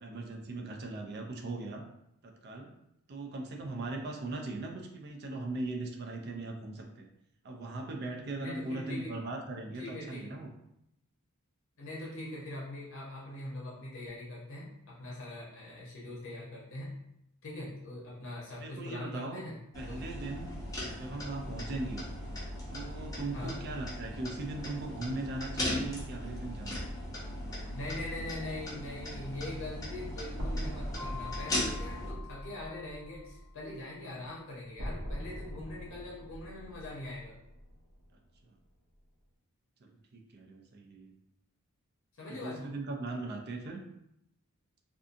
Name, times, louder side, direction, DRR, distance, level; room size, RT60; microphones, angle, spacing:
voice 1, 0.0-1.8 2.2-2.7 3.1-7.1 7.4-10.5 18.6-19.4 19.7-20.6 20.9-22.0 22.7-26.8 38.4-38.5 39.8-41.1 42.3-43.8, right 2 dB, 45° right, 2 dB, 0.4 m, -39 dB
voice 2, 8.4-9.1 9.7-10.3 11.8-16.9 17.4-19.6 19.9-20.0 23.3-23.6 27.7-37.4 42.2-42.7, left 1 dB, 60° left, -5 dB, 0.7 m, -42 dB
sound 1, 19.7-32.1, left 1 dB, 15° left, 0.6 m, -38 dB
sound 2, 30.3-34.4 34.7-38.1, equal, 80° right, 0.8 m, -42 dB
Mallet percussion, 31.0-33.6, left 6 dB, 30° right, 0.8 m, -47 dB
2.6 x 2.4 x 2.5 m, 0.79 s
head